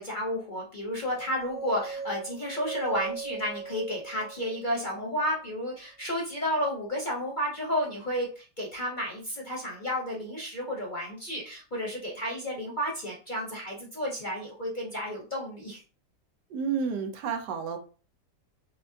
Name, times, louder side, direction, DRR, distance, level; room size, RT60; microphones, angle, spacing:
voice 1, 0.0-15.8, equal, 40° left, -3 dB, 0.7 m, -32 dB
sound 1, 1.1-5.2, right 4 dB, 20° right, 0.6 m, -39 dB
voice 2, 16.5-17.8, right 6 dB, 85° right, 5 dB, 1.3 m, -30 dB
5.9 x 2.1 x 2.7 m, 0.36 s
omnidirectional pair, 1.8 m